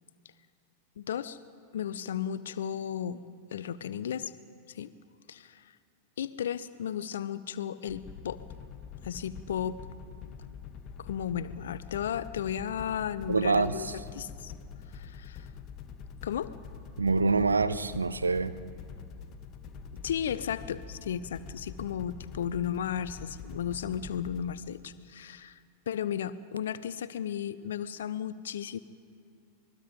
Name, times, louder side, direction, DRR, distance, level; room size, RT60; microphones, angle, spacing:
voice 1, 1.0-1.4 1.7-3.2 3.5-4.3 4.7-4.9 5.3-5.7 6.2-8.4 9.0-9.9 11.0-14.5 14.9-15.5 16.2-16.5 20.0-25.6 25.9-28.8, left 9 dB, 60° left, 0.7 m, -34 dB
sound 1, 7.9-24.5, left 6 dB, 35° left, 1.5 m, -45 dB
voice 2, 13.3-13.7 17.0-18.6, right 4 dB, 75° right, 0.8 m, -25 dB
26.0 x 21.0 x 5.3 m
figure-of-eight pair, 90°, 0 cm